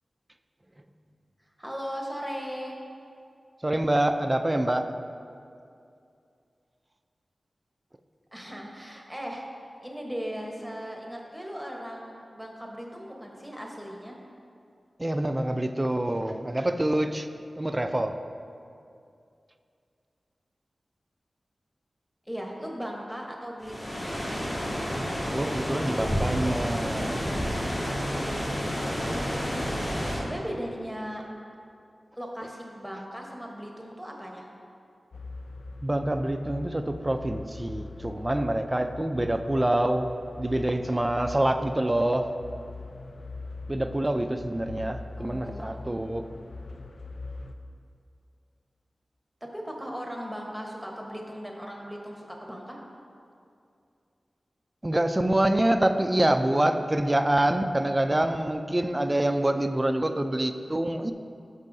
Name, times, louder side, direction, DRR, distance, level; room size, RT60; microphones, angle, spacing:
voice 1, 1.6-2.8 8.3-9.5 9.8-14.2 22.3-24.1 28.8-29.7 30.1-31.2 32.2-34.5 45.2-45.8 49.4-52.8, equal, ahead, -1 dB, 1.1 m, -38 dB
voice 2, 3.6-4.9 15.0-17.3 17.6-18.2 25.3-27.2 35.8-40.1 40.4-42.3 43.7-46.2 54.8-61.1, right 1 dB, 20° right, 7 dB, 0.4 m, -26 dB
sound 1, 23.6-30.2, equal, 35° left, 1.9 m, -30 dB
sound 2, 35.1-47.5, left 3 dB, 70° left, 0.4 m, -42 dB
13.0 x 5.5 x 2.7 m, 2.5 s
wide cardioid pair, 80°, 0 cm